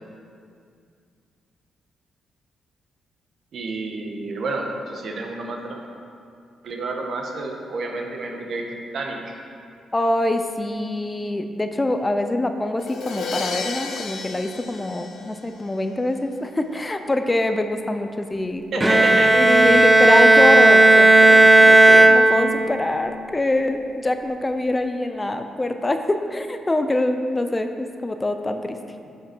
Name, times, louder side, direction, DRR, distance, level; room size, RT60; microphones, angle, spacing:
voice 1, 3.5-5.8 6.6-8.6 8.9-9.2 18.7-19.3, right 3 dB, 65° right, 1 dB, 1.2 m, -30 dB
voice 2, 9.9-28.8, left 1 dB, 20° left, 7 dB, 0.5 m, -24 dB
Crash cymbal, 12.8-15.7, left 4 dB, 75° left, 0.9 m, -32 dB
Bowed string instrument, 18.8-22.8, right 2 dB, 20° right, 0.6 m, -13 dB
9.4 x 5.6 x 4.6 m, 2.3 s
cardioid pair, 75°, 0 cm